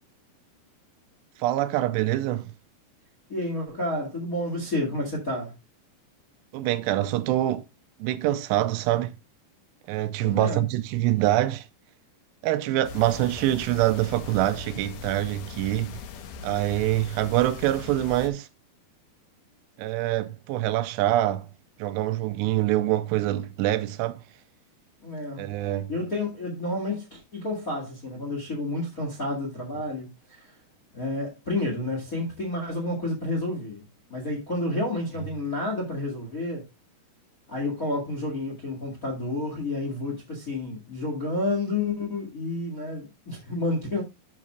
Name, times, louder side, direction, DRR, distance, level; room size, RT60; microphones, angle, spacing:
voice 1, 1.4-2.5 6.5-7.6 8.0-9.1 9.9-11.7 12.4-16.0 16.4-18.5 19.8-21.5 21.8-24.2 25.4-25.9, right 14 dB, 80° right, 2.7 m, -25 dB
voice 2, 3.3-5.5 10.2-10.6 25.0-25.5 25.9-30.5 30.9-33.8 34.1-36.6 37.5-44.0, left 2 dB, 35° left, 1.4 m, -30 dB
sound 1, 12.8-18.3, left 6 dB, 70° left, 2.2 m, -40 dB
12.0 x 6.6 x 2.4 m
omnidirectional pair, 5.0 m